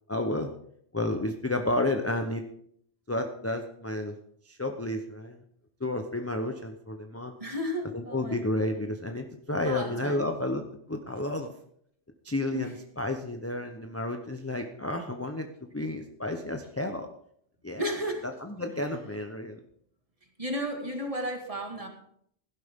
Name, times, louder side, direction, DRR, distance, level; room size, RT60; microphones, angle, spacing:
voice 1, 0.1-0.5 0.9-2.4 3.1-4.2 4.4-5.4 5.8-7.4 7.9-10.6 10.9-11.5 12.2-17.1 17.6-17.8 18.4-19.6, left 1 dB, 15° left, 4 dB, 0.8 m, -31 dB
voice 2, 7.4-8.5 9.6-10.3 12.5-12.7 17.8-18.3 20.4-21.9, equal, 30° right, 3 dB, 2.2 m, -33 dB
16.5 x 12.0 x 3.7 m, 0.68 s
omnidirectional pair, 1.3 m